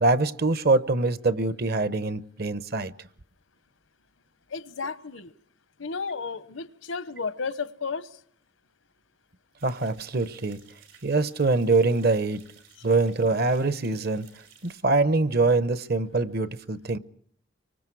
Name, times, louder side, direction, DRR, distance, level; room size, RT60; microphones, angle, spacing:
voice 1, 0.0-2.9 9.6-10.6 11.0-12.4 12.8-14.3 14.6-17.0, right 3 dB, 50° right, 0.8 m, -24 dB
voice 2, 4.5-5.3 5.8-8.1, left 5 dB, 80° left, 1.0 m, -33 dB
sound 1, 9.6-14.8, right 7 dB, 90° right, 6.5 m, -56 dB
26.5 x 24.0 x 4.7 m
head